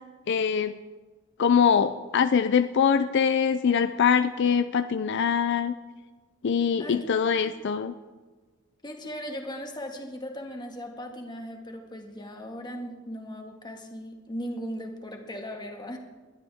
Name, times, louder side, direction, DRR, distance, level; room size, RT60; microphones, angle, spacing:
voice 1, 0.3-0.7 1.4-5.7 6.4-7.9, left 7 dB, 60° left, 10 dB, 0.4 m, -23 dB
voice 2, 8.8-16.0, equal, 20° left, 2 dB, 1.8 m, -38 dB
20.5 x 12.5 x 3.5 m, 1.3 s
head